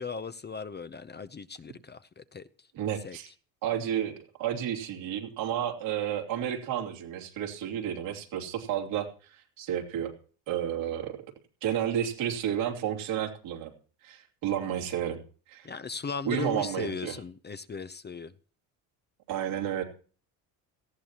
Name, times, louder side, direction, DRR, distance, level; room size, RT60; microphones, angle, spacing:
voice 1, 0.0-2.7 3.0-3.3 15.6-18.3, left 5 dB, 20° left, 0.7 m, -38 dB
voice 2, 2.7-3.3 3.6-10.1 10.5-11.2 11.6-13.7 14.0-15.2 15.5-15.7 16.2-17.1 19.3-19.8, right 10 dB, 75° right, 3.0 m, -31 dB
18.0 x 14.5 x 3.0 m
supercardioid pair, 80°, 46 cm